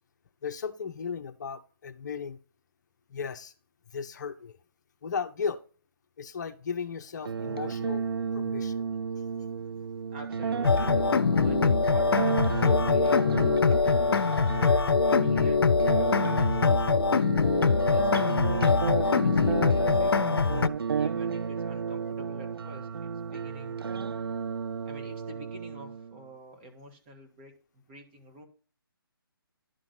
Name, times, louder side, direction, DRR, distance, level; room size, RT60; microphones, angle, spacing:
voice 1, 0.4-2.4 3.1-3.5 3.9-4.6 5.0-5.6 6.2-8.0 8.3-8.8 19.0-19.1, left 6 dB, 50° left, 0.8 m, -35 dB
sound 1, 7.2-26.2, right 6 dB, 70° right, 0.5 m, -32 dB
voice 2, 10.1-14.1 14.6-17.3 17.9-20.2 20.9-24.1 24.8-28.5, right 1 dB, 30° right, 2.1 m, -48 dB
sound 2, 10.6-20.7, left 5 dB, 80° left, 0.5 m, -23 dB
11.0 x 3.9 x 6.0 m
figure-of-eight pair, 150°, 13 cm